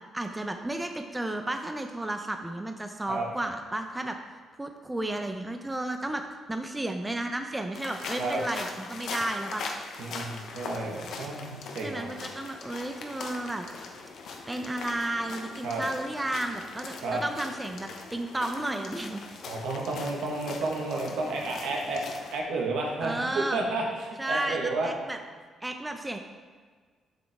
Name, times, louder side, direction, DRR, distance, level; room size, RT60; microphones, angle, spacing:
voice 1, 0.1-4.2 4.6-6.2 6.5-9.6 11.8-13.7 14.5-19.2 23.0-23.7 24.2-25.2 25.6-26.2, right 1 dB, 15° right, 5 dB, 0.5 m, -33 dB
sound 1, 7.7-22.4, left 4 dB, 70° left, 0.9 m, -41 dB
voice 2, 10.0-12.1 15.6-15.8 17.0-17.2 19.5-22.0 22.3-24.9, right 2 dB, 80° right, -1 dB, 1.4 m, -31 dB
7.9 x 6.3 x 3.5 m, 1.5 s
cardioid pair, 90°, 0 cm